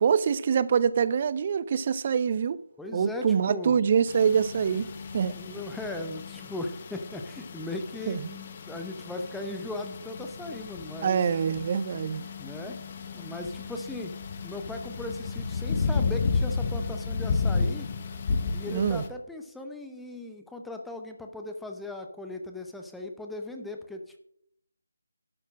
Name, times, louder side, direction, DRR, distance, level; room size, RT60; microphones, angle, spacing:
voice 1, 0.0-2.6 2.9-4.9 5.1-5.3 8.1-8.2 11.0-12.2 18.7-19.0, right 7 dB, 35° right, 0.5 m, -25 dB
voice 2, 2.8-3.8 5.3-11.2 12.4-12.8 13.1-14.1 14.4-17.9 18.5-24.2, left 2 dB, 5° left, 0.7 m, -38 dB
sound 1, 4.1-19.1, left 4 dB, 35° left, 0.9 m, -33 dB
12.0 x 4.3 x 7.3 m
figure-of-eight pair, 155°, 0 cm